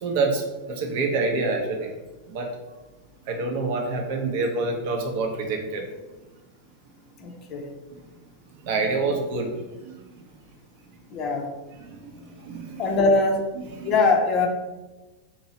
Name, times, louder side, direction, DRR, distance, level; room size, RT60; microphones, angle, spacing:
voice 1, 0.0-1.9 2.3-2.5 3.3-5.9 7.9-8.0 8.6-10.0 11.9-12.8 13.6-13.9, right 3 dB, 50° right, 2 dB, 0.7 m, -27 dB
voice 2, 7.2-7.7 11.1-11.5 12.8-13.4 13.8-14.5, left 3 dB, 35° left, 3 dB, 0.6 m, -22 dB
2.9 x 2.7 x 4.1 m, 1.1 s
figure-of-eight pair, 90°, 0 cm